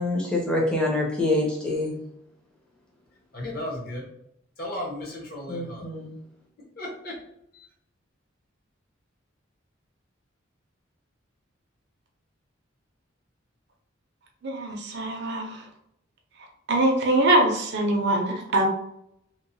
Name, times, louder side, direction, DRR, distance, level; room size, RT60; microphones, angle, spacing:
voice 1, 0.0-2.0 5.5-6.1, left 2 dB, 5° left, -2 dB, 0.5 m, -26 dB
voice 2, 3.3-4.1 4.6-5.9 6.8-7.1 7.5-7.7, left 1 dB, 45° left, -2 dB, 0.8 m, -35 dB
voice 3, 14.4-15.6 16.7-18.7, right 1 dB, 55° right, 2 dB, 0.5 m, -23 dB
2.9 x 2.0 x 2.6 m, 0.76 s
head